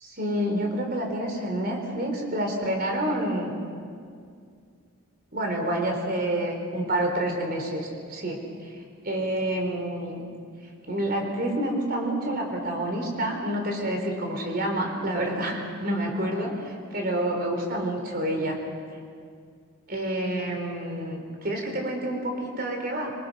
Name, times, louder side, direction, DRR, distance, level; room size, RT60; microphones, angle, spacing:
voice 1, 0.0-3.6 5.3-8.4 9.0-10.2 10.8-18.6 19.9-23.1, right 1 dB, 45° right, 2 dB, 4.4 m, -28 dB
26.5 x 25.5 x 6.4 m, 2.2 s
head